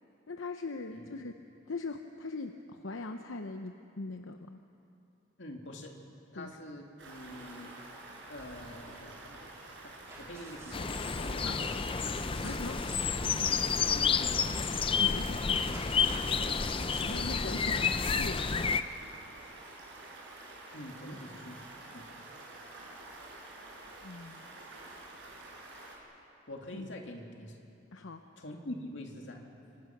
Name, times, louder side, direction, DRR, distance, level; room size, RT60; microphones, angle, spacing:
voice 1, 0.3-1.3 1.7-4.6 6.4-6.6 11.4-11.6 12.4-12.8 15.0-15.8 17.0-18.8 24.0-24.5 26.7-26.9 27.9-28.2, left 3 dB, 90° left, 6 dB, 0.9 m, -41 dB
voice 2, 5.4-6.0 6.3-7.7 8.3-9.5 9.8-11.6 13.8-14.6 16.8-17.0 20.7-21.6 21.9-22.1 26.5-27.6 28.4-29.5, left 1 dB, 70° left, 1 dB, 2.6 m, -45 dB
Stream, 7.0-26.0, right 2 dB, 65° right, 5.2 m, -49 dB
sound 1, 10.0-18.6, right 1 dB, 15° right, 3.6 m, -49 dB
sound 2, 10.7-18.8, left 6 dB, 25° left, 0.5 m, -30 dB
27.5 x 24.5 x 6.1 m, 2.8 s
head